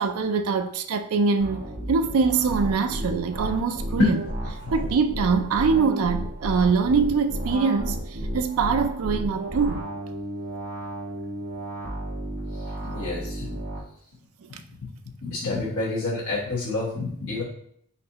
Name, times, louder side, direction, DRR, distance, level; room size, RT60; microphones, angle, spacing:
voice 1, 0.0-4.2 4.7-9.8 14.4-14.5, right 5 dB, 75° right, 0.4 m, -23 dB
sound 1, 1.4-13.8, right 1 dB, 50° right, 1.3 m, -32 dB
voice 2, 12.8-13.6 14.5-14.6 15.2-17.4, left 3 dB, 70° left, 1.3 m, -27 dB
4.2 x 4.1 x 2.9 m
head